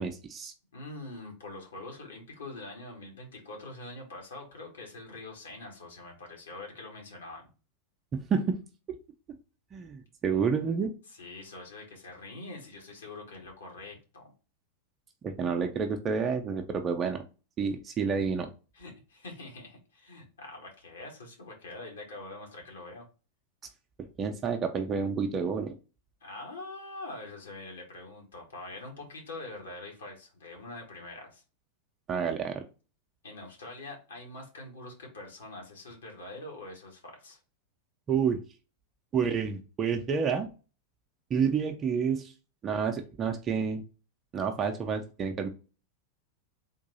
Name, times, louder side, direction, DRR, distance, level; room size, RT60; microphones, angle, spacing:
voice 1, 0.0-0.5 8.1-8.6 9.7-10.9 15.2-17.2 17.6-18.5 24.2-25.7 32.1-32.6 38.1-38.4 39.1-40.5 41.3-42.3 42.6-43.8 44.3-45.5, right 6 dB, 25° right, 5 dB, 0.5 m, -29 dB
voice 2, 0.7-7.5 11.1-14.3 18.7-23.0 26.2-31.4 33.2-37.4, left 2 dB, 65° left, 0 dB, 1.6 m, -44 dB
3.7 x 2.6 x 4.0 m, 0.34 s
figure-of-eight pair, 90°, 0 cm